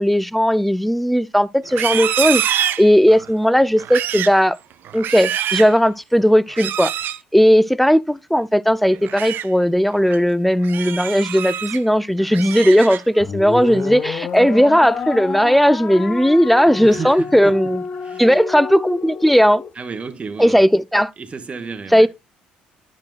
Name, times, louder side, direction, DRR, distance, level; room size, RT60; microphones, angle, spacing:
voice 1, 0.0-4.6 4.9-6.9 7.3-17.8 18.2-19.6 20.4-21.1 21.9-22.1, equal, ahead, 0.4 m, -16 dB
Livestock farm animals working animals, 1.6-3.3 3.8-4.4 4.8-5.8 6.5-7.2 8.9-9.5 9.9-10.2 10.6-11.8 12.2-13.2 13.6-14.0 14.4-14.8, right 11 dB, 55° right, 0.5 m, -25 dB
sound 1, 13.2-19.7, left 5 dB, 40° left, 0.8 m, -29 dB
voice 2, 16.6-17.5 18.0-18.4 19.7-20.7 21.2-22.1, right 5 dB, 30° right, 1.0 m, -32 dB
10.5 x 6.2 x 2.4 m
hypercardioid pair, 55°, 4 cm